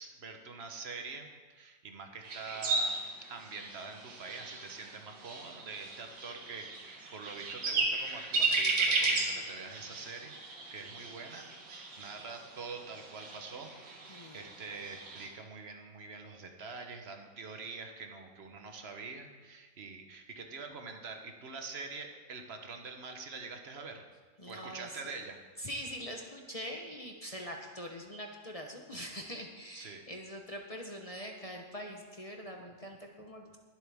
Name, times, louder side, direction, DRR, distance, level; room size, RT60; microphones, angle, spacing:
voice 1, 0.0-3.0 3.3-11.4 12.0-13.7 14.1-24.1 24.5-25.4 29.7-30.0, right 4 dB, 45° right, 4 dB, 1.0 m, -45 dB
sound 1, 2.2-15.3, right 3 dB, 85° right, 2.3 m, -35 dB
voice 2, 14.1-14.5 24.4-25.0 25.6-33.6, equal, 30° left, 2 dB, 0.6 m, -43 dB
21.5 x 8.0 x 3.5 m, 1.4 s
omnidirectional pair, 2.0 m